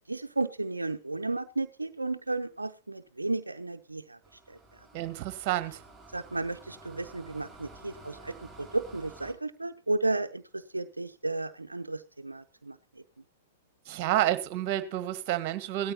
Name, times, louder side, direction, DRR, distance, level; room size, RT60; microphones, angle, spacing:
voice 1, 0.1-4.2 4.5-4.6 6.1-12.8, right 2 dB, 90° right, 0.6 m, -33 dB
sound 1, 4.2-9.3, right 2 dB, ahead, 6.0 m, -51 dB
voice 2, 4.9-5.8 13.9-15.9, right 13 dB, 45° right, 1.5 m, -29 dB
17.5 x 13.0 x 2.8 m
figure-of-eight pair, 105°, 0 cm